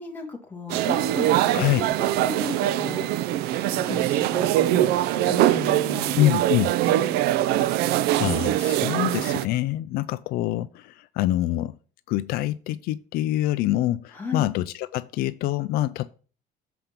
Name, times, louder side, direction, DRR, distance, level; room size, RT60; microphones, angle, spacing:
voice 1, 0.0-6.2 6.8-7.2 14.1-14.5, left 3 dB, 10° left, 1.9 m, -36 dB
sound 1, 0.7-9.5, right 13 dB, 75° right, 0.4 m, -23 dB
voice 2, 1.5-1.9 6.1-6.7 8.2-11.7 12.1-16.1, left 15 dB, 70° left, 0.4 m, -25 dB
6.9 x 5.1 x 5.8 m
cardioid pair, 150°, 16 cm